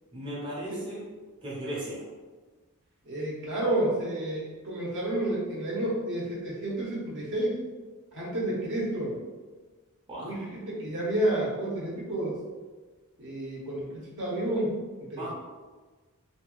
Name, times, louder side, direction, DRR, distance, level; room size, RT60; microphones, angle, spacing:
voice 1, 0.1-1.1 1.4-2.0 10.1-10.4 15.2-15.3, right 1 dB, 25° right, -7 dB, 0.6 m, -36 dB
voice 2, 3.0-7.6 8.1-9.1 10.2-12.4 13.2-15.3, right 1 dB, 55° right, -4 dB, 0.8 m, -30 dB
2.8 x 2.3 x 2.9 m, 1.3 s
head